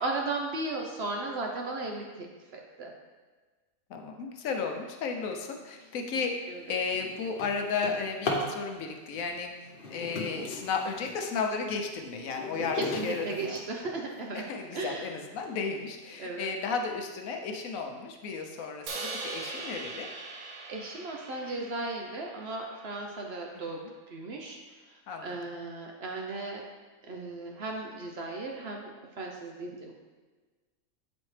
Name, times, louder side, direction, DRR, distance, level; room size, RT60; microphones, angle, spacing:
voice 1, 0.0-2.3 2.5-2.9 6.5-6.6 12.7-14.4 14.7-15.1 16.2-16.5 20.3-23.8 24.1-24.6 24.9-26.6 27.1-28.9 29.2-29.9, right 2 dB, 60° right, 1 dB, 0.7 m, -36 dB
voice 2, 3.9-6.4 6.7-9.5 9.9-13.6 14.3-20.1 23.7-23.9 25.1-25.4, left 5 dB, 75° left, 3 dB, 1.1 m, -34 dB
Drawer open or close, 5.9-6.1 6.6-8.6 9.6-11.2 11.8-14.2 14.8-14.9 15.4-15.5 15.9-16.3, left 2 dB, 45° left, 0.9 m, -37 dB
Crash cymbal, 18.9-23.1, right 3 dB, 80° right, 1.2 m, -41 dB
7.9 x 4.2 x 3.2 m, 1.3 s
omnidirectional pair, 1.5 m